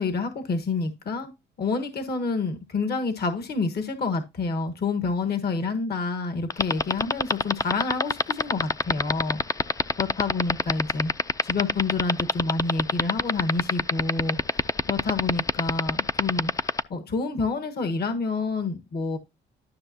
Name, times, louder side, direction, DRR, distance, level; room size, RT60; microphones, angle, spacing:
voice 1, 0.0-1.3 1.6-9.4 10.0-11.1 11.4-14.6 14.9-19.2, left 4 dB, 55° left, 1.4 m, -28 dB
sound 1, 6.5-16.8, left 3 dB, 15° left, 0.4 m, -22 dB
12.0 x 6.0 x 2.8 m
cardioid pair, 90°, 20 cm